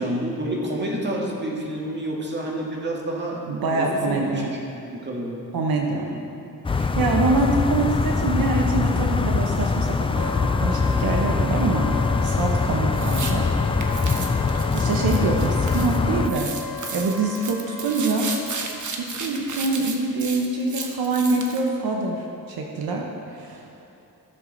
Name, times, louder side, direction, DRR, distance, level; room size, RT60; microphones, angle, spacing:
voice 1, 0.0-5.5 5.9-6.2, right 1 dB, 30° right, -2 dB, 1.8 m, -29 dB
voice 2, 3.5-4.5 5.5-6.1 6.7-13.5 14.7-18.3 19.0-23.8, right 3 dB, 75° right, 1 dB, 1.0 m, -25 dB
sound 1, 6.6-16.3, left 4 dB, 15° left, 0.3 m, -23 dB
Wind instrument woodwind instrument, 10.1-18.6, left 4 dB, 50° left, 1.2 m, -35 dB
sound 2, 12.9-13.3 13.8-16.0 16.3-21.7, right 4 dB, 55° right, 1.1 m, -34 dB
15.5 x 6.6 x 3.9 m, 2.7 s
cardioid pair, 100°, 36 cm